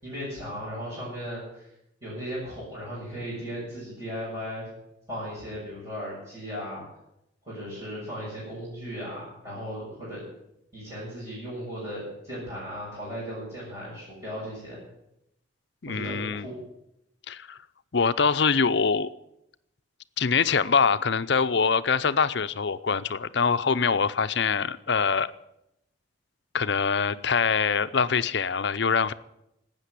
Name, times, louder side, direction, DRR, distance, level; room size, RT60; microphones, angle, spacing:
voice 1, 0.0-1.7 2.0-4.7 5.1-6.8 7.4-10.2 10.7-14.8 15.9-16.6, equal, 20° right, -10 dB, 7.3 m, -36 dB
voice 2, 15.8-16.5 17.3-17.6 17.9-19.1 20.2-25.3 26.5-29.1, left 5 dB, 60° left, 13 dB, 0.6 m, -24 dB
12.5 x 9.0 x 10.0 m, 0.83 s
head